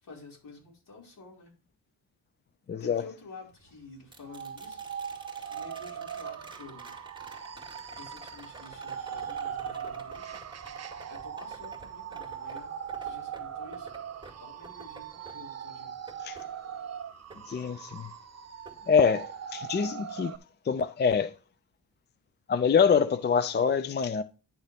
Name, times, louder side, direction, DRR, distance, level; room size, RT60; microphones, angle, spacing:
voice 1, 0.0-1.5 2.8-6.9 8.0-10.4 11.1-12.7 13.0-14.0 14.4-15.9 17.3-17.4, left 3 dB, 65° left, 5.0 m, -50 dB
voice 2, 2.7-3.0 16.2-16.4 17.5-18.1 18.9-20.3 20.6-21.3 22.5-24.2, left 6 dB, 30° left, 0.4 m, -25 dB
sound 1, 4.1-18.2 18.6-19.7 21.9-22.0, right 2 dB, 15° right, 2.2 m, -51 dB
sound 2, 4.2-20.4, right 8 dB, 45° right, 0.8 m, -40 dB
10.0 x 6.5 x 3.4 m
wide cardioid pair, 130°, 35 cm